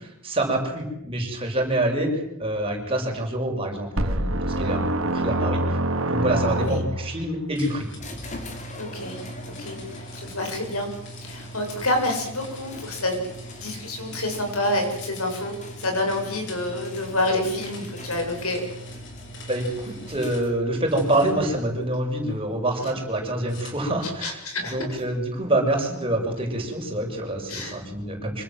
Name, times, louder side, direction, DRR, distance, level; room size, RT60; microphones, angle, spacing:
voice 1, 0.0-5.8 6.1-7.9 19.5-24.4 24.7-28.4, right 1 dB, 25° right, 1 dB, 7.0 m, -26 dB
sound 1, 4.0-7.2, right 1 dB, 60° right, 2.2 m, -25 dB
sound 2, 7.5-20.5 20.9-22.4 23.5-24.4, left 1 dB, 55° left, 6.3 m, -45 dB
sound 3, 8.0-20.8, right 1 dB, 35° left, 3.8 m, -40 dB
voice 2, 8.8-9.2 9.6-10.9 11.2-13.2 13.6-18.6 24.0-24.8 27.5-27.8, left 1 dB, 75° left, 4 dB, 7.4 m, -28 dB
26.5 x 26.0 x 7.7 m, 0.83 s
head